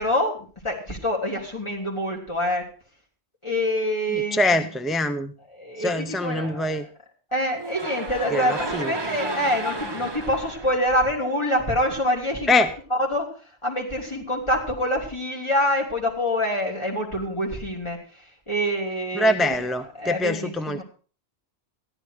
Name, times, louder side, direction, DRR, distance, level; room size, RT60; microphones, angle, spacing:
voice 1, 0.0-2.7 3.4-4.4 5.5-6.8 7.3-12.5 13.1-13.3 13.6-18.0 18.5-19.5 20.0-20.8, equal, 25° left, -2 dB, 3.4 m, -26 dB
voice 2, 4.1-5.3 5.8-6.9 8.3-8.9 12.5-12.7 19.1-20.8, left 1 dB, ahead, 9 dB, 0.3 m, -24 dB
sound 1, 7.6-11.8, right 2 dB, 25° right, 1.0 m, -33 dB
14.0 x 11.0 x 4.7 m, 0.38 s
omnidirectional pair, 1.2 m